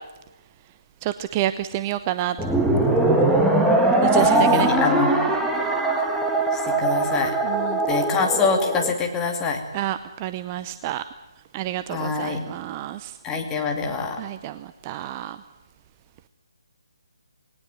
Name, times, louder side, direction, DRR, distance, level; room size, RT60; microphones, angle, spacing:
voice 1, 1.0-2.4 4.0-4.7 7.4-7.8 9.7-11.0 11.5-13.1 14.2-15.4, right 13 dB, 25° right, 12 dB, 0.6 m, -28 dB
sound 1, 2.4-8.9, right 2 dB, 5° right, 1.7 m, -21 dB
voice 2, 4.2-5.2 6.5-7.3 7.9-9.6 11.9-12.4 13.2-14.2, left 4 dB, 15° left, 3 dB, 2.6 m, -25 dB
20.0 x 18.5 x 9.4 m, 1.1 s
figure-of-eight pair, 150°, 3 cm